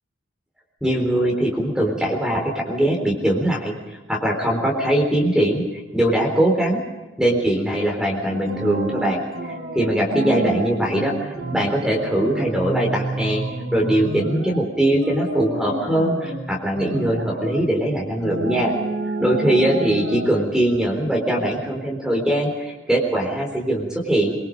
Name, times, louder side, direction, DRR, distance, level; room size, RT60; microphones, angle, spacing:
voice 1, 0.8-5.6 5.9-6.8 7.2-18.7 19.2-24.4, right 1 dB, 5° right, 0 dB, 3.8 m, -21 dB
sound 1, 8.3-14.7 15.0-16.5 16.7-17.6 18.2-20.3, right 2 dB, 75° right, 6.8 m, -29 dB
23.5 x 23.5 x 5.3 m, 1.2 s
head